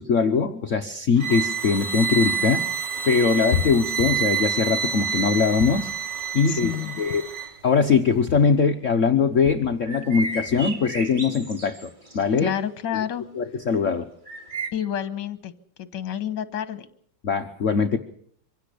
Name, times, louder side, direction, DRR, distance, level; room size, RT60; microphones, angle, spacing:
voice 1, 0.0-5.9 6.3-6.7 7.0-7.2 7.6-12.5 13.3-14.0 17.2-18.0, left 5 dB, 50° left, 5 dB, 1.2 m, -21 dB
sound 1, 1.2-7.5, right 7 dB, 65° right, 2.2 m, -28 dB
voice 2, 6.5-7.0 12.4-13.3 14.7-15.5 15.8-16.9, left 10 dB, 70° left, 13 dB, 1.7 m, -29 dB
sound 2, 9.9-12.3 12.6-12.7 14.3-14.7, right 2 dB, 25° right, 2.2 m, -34 dB
24.5 x 16.5 x 6.8 m, 0.64 s
omnidirectional pair, 2.1 m